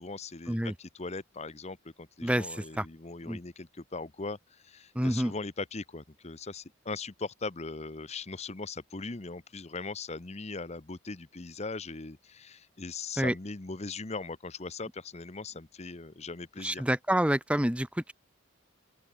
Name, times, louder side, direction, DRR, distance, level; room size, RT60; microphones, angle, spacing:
voice 1, 0.0-16.9, left 3 dB, 30° left, 0.9 m, -40 dB
voice 2, 2.2-2.9 3.2-3.4 4.9-5.3 13.2-13.3 16.6-18.1, right 1 dB, 5° right, 1.0 m, -28 dB
open air
head